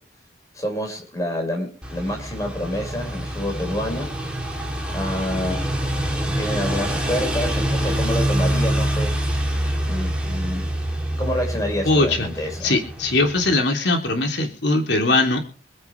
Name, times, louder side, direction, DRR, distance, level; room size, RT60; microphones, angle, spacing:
voice 1, 0.5-4.1 4.9-5.7 6.3-9.1 9.9-10.7 11.2-12.8, left 1 dB, 20° left, 2 dB, 6.2 m, -28 dB
sound 1, 1.8-13.5, right 1 dB, 5° right, 3.4 m, -25 dB
voice 2, 11.9-12.3 12.6-15.4, left 2 dB, 70° left, 1 dB, 3.4 m, -20 dB
26.5 x 9.2 x 3.5 m, 0.44 s
head